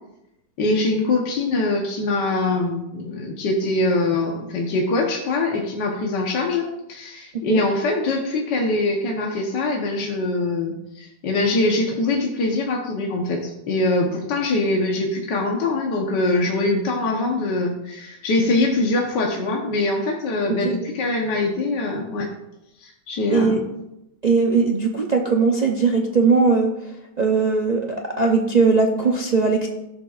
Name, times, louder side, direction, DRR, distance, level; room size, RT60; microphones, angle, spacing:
voice 1, 0.6-22.3 22.8-23.6, left 2 dB, 70° left, 0 dB, 1.8 m, -23 dB
voice 2, 24.2-26.7 27.2-29.7, right 4 dB, 45° right, 0 dB, 0.5 m, -19 dB
15.5 x 6.8 x 2.5 m, 0.89 s
omnidirectional pair, 2.0 m